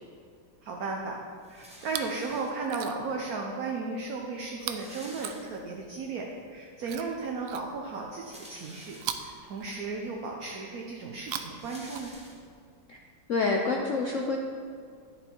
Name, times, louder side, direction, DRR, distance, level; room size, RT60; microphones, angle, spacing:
voice 1, 0.6-1.2 1.5-12.1, right 4 dB, 60° right, 0 dB, 1.1 m, -35 dB
sound 1, 1.4-2.9 3.7-3.8 4.0-4.1 4.4-6.0 6.4-6.5 7.9-9.4 10.0-10.1 10.4-12.8, equal, 5° right, 1.0 m, -50 dB
Chewing mastication, 1.7-2.2 2.6-3.2 4.6-5.9 6.8-8.1 9.0-10.2 11.1-12.5 13.4-13.5, right 9 dB, 90° right, 1.4 m, -40 dB
voice 2, 13.3-14.4, left 3 dB, 65° left, 1 dB, 0.8 m, -27 dB
11.0 x 7.1 x 4.5 m, 2.1 s
omnidirectional pair, 2.1 m